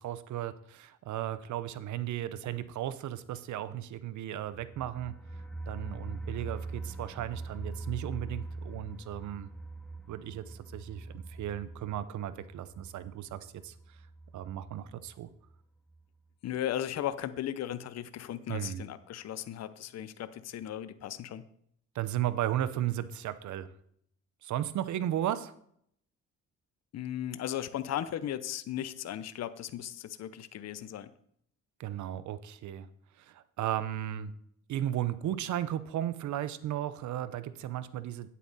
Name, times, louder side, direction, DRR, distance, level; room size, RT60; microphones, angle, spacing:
voice 1, 0.0-5.1 5.7-9.5 10.1-13.7 14.3-15.3 18.5-18.8 21.9-23.7 24.4-25.5 31.8-32.9 33.2-34.3 34.7-38.3, right 12 dB, 70° right, 14 dB, 0.7 m, -35 dB
sound 1, 4.5-15.2 15.5-15.6 15.9-16.0, right 3 dB, 5° left, 0.7 m, -43 dB
voice 2, 16.4-21.5 26.9-31.1, left 11 dB, 60° left, 14 dB, 0.7 m, -36 dB
9.2 x 8.3 x 4.1 m, 0.68 s
cardioid pair, 90°, 30 cm